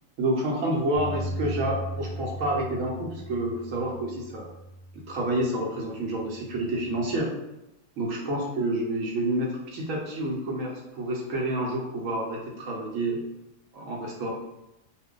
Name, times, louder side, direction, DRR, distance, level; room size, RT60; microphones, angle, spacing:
voice 1, 0.2-4.5 4.9-7.3 8.0-13.2 13.7-14.3, right 1 dB, 65° right, -1 dB, 0.9 m, -29 dB
Bass guitar, 1.0-5.4 6.0-7.2, right 1 dB, 70° left, 0.9 m, -38 dB
2.5 x 2.1 x 3.6 m, 0.93 s
omnidirectional pair, 1.6 m